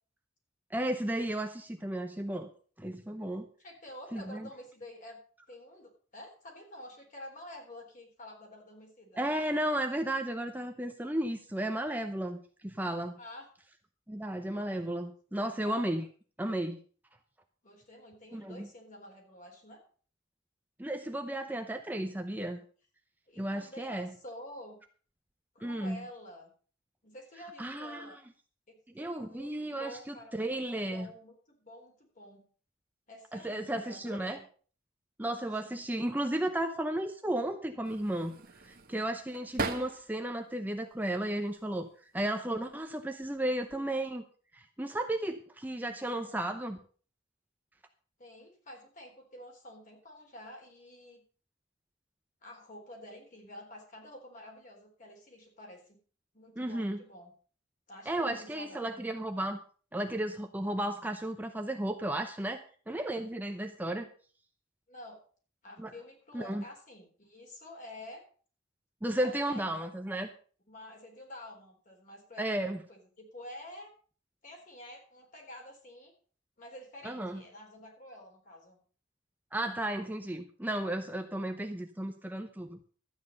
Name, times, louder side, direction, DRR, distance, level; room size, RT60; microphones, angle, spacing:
voice 1, 0.7-2.5 2.8-3.5 4.1-4.5 9.2-13.2 14.1-16.1 16.4-16.8 18.3-18.7 20.8-22.6 23.4-24.1 25.6-26.0 27.6-28.2 28.9-31.1 33.3-34.4 35.2-38.4 38.6-41.9 42.1-44.2 44.5-46.8 56.6-57.0 58.1-59.6 59.9-64.1 65.8-65.9 66.3-66.6 69.0-70.3 72.4-72.8 77.0-77.4 79.5-82.8, right 1 dB, 10° right, 5 dB, 0.7 m, -34 dB
voice 2, 3.6-5.2 5.5-9.3 13.2-13.5 15.4-15.9 17.6-19.8 23.3-24.8 25.5-26.5 27.0-28.2 28.7-30.6 30.9-32.5 33.1-34.4 35.4-35.8 48.2-51.2 52.4-56.0 56.3-57.3 57.9-59.0 64.9-65.2 65.6-68.2 69.0-69.8 70.7-73.9 74.4-76.1 76.6-78.8, left 1 dB, 40° left, 1 dB, 4.0 m, -49 dB
sound 1, 37.8-40.3 40.8-41.6 42.5-42.9 43.2-44.0, right 3 dB, 50° right, 1.2 m, -40 dB
13.0 x 9.2 x 5.3 m, 0.42 s
head